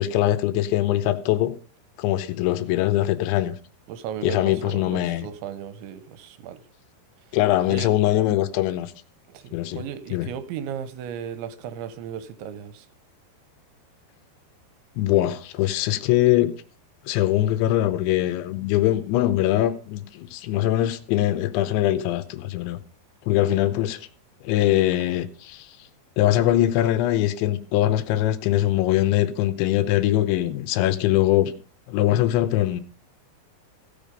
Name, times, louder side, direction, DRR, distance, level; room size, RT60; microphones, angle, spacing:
voice 1, 0.0-1.6 2.0-3.6 4.2-5.3 7.3-8.9 9.5-9.8 10.1-10.3 15.0-16.5 17.1-22.8 23.3-24.0 24.4-25.7 26.2-31.5 31.9-32.8, left 14 dB, 85° left, 3.0 m, -22 dB
voice 2, 3.9-6.7 7.7-7.9 9.3-12.9, right 8 dB, 90° right, 3.2 m, -35 dB
15.5 x 6.9 x 5.1 m
omnidirectional pair, 5.3 m